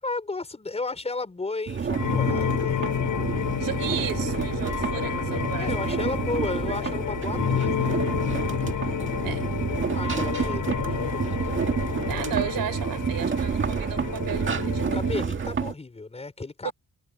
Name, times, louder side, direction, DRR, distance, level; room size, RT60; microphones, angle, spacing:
voice 1, 0.0-3.2 5.6-8.0 9.3-11.6 14.9-16.7, left 3 dB, 20° left, 5.5 m, -34 dB
sound 1, 1.7-15.7, right 6 dB, 35° right, 2.0 m, -29 dB
sound 2, 1.9-15.2, left 9 dB, 65° left, 6.9 m, -30 dB
voice 2, 3.6-7.0 9.2-9.5 12.1-15.0 16.6-16.7, right 11 dB, 85° right, 6.4 m, -35 dB
wide cardioid pair, 170°, 34 cm